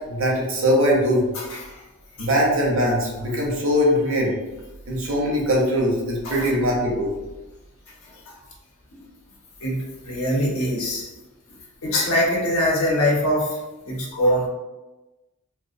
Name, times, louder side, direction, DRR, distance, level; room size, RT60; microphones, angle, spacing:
voice 1, 0.1-1.3 2.2-4.3 4.9-7.1, equal, 65° right, -3 dB, 0.7 m, -21 dB
voice 2, 1.3-1.8 2.2-2.3 6.2-6.5 8.1-8.4 9.6-11.1 11.8-13.6 13.9-14.5, left 1 dB, 75° left, -3 dB, 0.6 m, -23 dB
2.4 x 2.1 x 2.6 m, 1.1 s
head